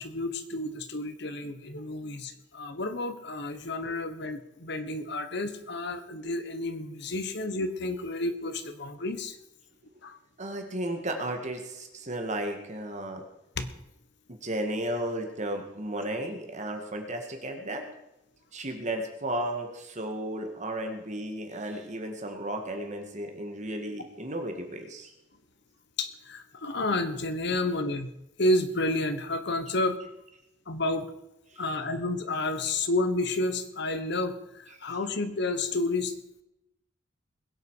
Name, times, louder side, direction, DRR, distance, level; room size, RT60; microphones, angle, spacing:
voice 1, 0.0-9.4 10.0-10.2 13.6-13.7 26.0-28.1 28.4-30.0 30.7-31.1 31.6-36.1, left 2 dB, 60° left, 9 dB, 1.3 m, -30 dB
voice 2, 10.4-13.2 14.3-17.8 18.5-25.1, right 1 dB, 40° right, 4 dB, 1.9 m, -34 dB
21.5 x 8.3 x 4.8 m, 0.89 s
head